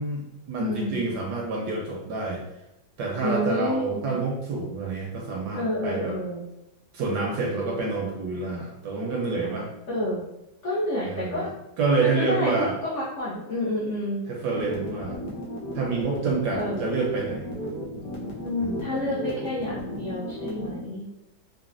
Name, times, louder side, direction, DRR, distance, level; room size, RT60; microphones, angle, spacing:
voice 1, 0.0-2.4 3.0-6.1 6.9-9.7 11.0-11.5 11.8-12.7 14.3-15.2 15.7-17.5 18.6-18.8, right 3 dB, 75° right, -2 dB, 1.0 m, -28 dB
voice 2, 0.6-1.1 3.2-4.1 5.6-6.4 7.5-7.6 9.4-10.2 10.6-11.5 12.0-14.2 16.5-16.8 18.4-21.0, left 1 dB, 80° left, -7 dB, 0.6 m, -29 dB
sound 1, 14.5-20.8, equal, 60° left, 1.0 m, -35 dB
3.9 x 2.0 x 2.4 m, 0.90 s
omnidirectional pair, 2.1 m